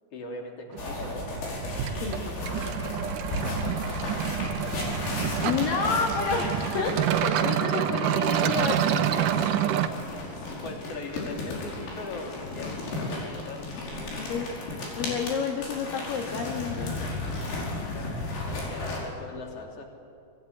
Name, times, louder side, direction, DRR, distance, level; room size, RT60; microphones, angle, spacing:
voice 1, 0.1-1.3 3.1-5.1 6.8-6.9 10.2-14.4 17.6-19.9, left 2 dB, 35° left, 1 dB, 3.7 m, -41 dB
sound 1, 0.7-9.9, right 10 dB, 70° right, 2.0 m, -28 dB
sound 2, 0.8-7.3 8.6-19.0, left 2 dB, 90° left, 7.4 m, -34 dB
sound 3, 1.8-4.4, right 8 dB, 85° right, 3.1 m, -42 dB
voice 2, 2.0-2.7 5.4-9.5 14.2-14.5 15.0-16.9, left 5 dB, 60° left, 1 dB, 3.1 m, -30 dB
24.5 x 20.5 x 9.7 m, 2.4 s
omnidirectional pair, 5.0 m